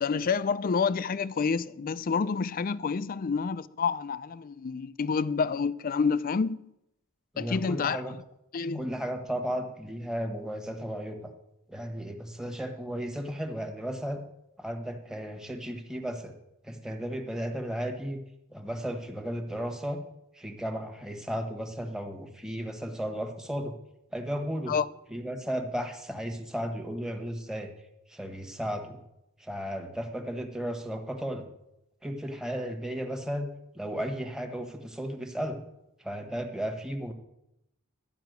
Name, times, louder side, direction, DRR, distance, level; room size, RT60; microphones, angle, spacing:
voice 1, 0.0-6.7 7.4-8.0 8.5-8.9 24.7-24.9, left 5 dB, 40° left, 0.4 m, -28 dB
voice 2, 7.3-8.1 8.7-11.2 11.7-14.2 14.6-16.3 16.6-18.2 18.5-20.0 20.4-23.7 24.1-24.7 25.1-27.7 28.1-29.0 29.4-31.4 32.0-33.5 33.7-35.6 36.0-37.1, equal, 5° right, 1.2 m, -34 dB
12.0 x 5.9 x 9.3 m
head